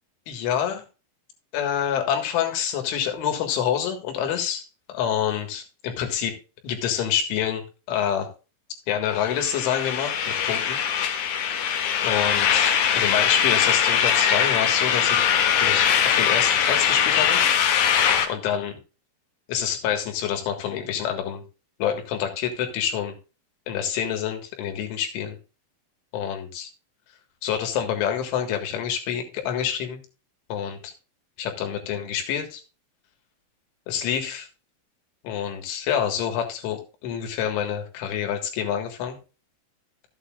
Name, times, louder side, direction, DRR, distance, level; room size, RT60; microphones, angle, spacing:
voice 1, 0.3-0.8 1.5-6.4 6.6-8.3 8.9-10.8 12.0-15.3 15.6-17.4 18.3-18.8 19.5-21.4 21.8-23.1 23.7-25.4 26.1-26.7 27.4-30.0 30.5-30.9 31.4-32.6 33.9-34.5 35.2-39.2, left 9 dB, 90° left, 4 dB, 4.1 m, -27 dB
sound 1, 9.2-18.3, left 8 dB, 70° left, 2.3 m, -21 dB
13.5 x 8.3 x 2.4 m, 0.32 s
omnidirectional pair, 5.3 m